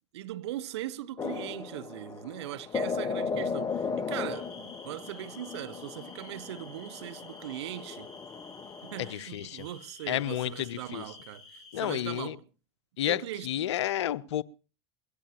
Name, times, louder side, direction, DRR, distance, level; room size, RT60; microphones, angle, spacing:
voice 1, 0.1-8.1 8.8-12.4 13.1-13.5, right 13 dB, 70° right, 1.0 m, -40 dB
sound 1, 1.2-9.1, left 5 dB, 25° left, 1.0 m, -36 dB
sound 2, 4.3-12.0, left 3 dB, 5° left, 7.5 m, -51 dB
voice 2, 9.0-9.7 10.1-11.0 11.7-12.4 13.0-14.4, left 12 dB, 75° left, 0.7 m, -31 dB
22.0 x 16.5 x 2.9 m
hypercardioid pair, 85°, 15 cm